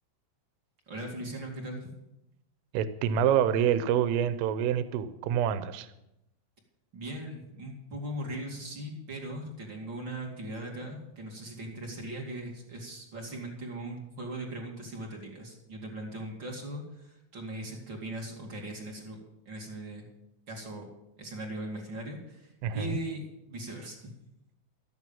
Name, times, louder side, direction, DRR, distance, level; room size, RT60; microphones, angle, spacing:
voice 1, 0.9-1.9 6.9-19.2 19.5-20.1 20.5-20.9 21.2-23.2 23.5-24.1, right 1 dB, 40° right, 0 dB, 1.8 m, -39 dB
voice 2, 2.7-5.9 22.6-23.0, right 9 dB, 85° right, 12 dB, 3.4 m, -27 dB
13.5 x 9.6 x 7.1 m, 0.87 s
omnidirectional pair, 5.8 m